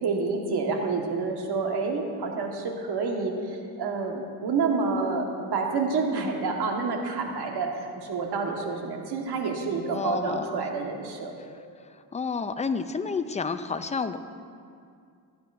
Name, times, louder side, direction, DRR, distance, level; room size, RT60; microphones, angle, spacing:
voice 1, 0.0-11.3, right 4 dB, 65° right, 1 dB, 1.6 m, -28 dB
voice 2, 9.9-10.6 12.1-14.2, left 5 dB, 15° left, 10 dB, 0.5 m, -30 dB
16.0 x 9.3 x 2.6 m, 2.3 s
cardioid pair, 85°, 42 cm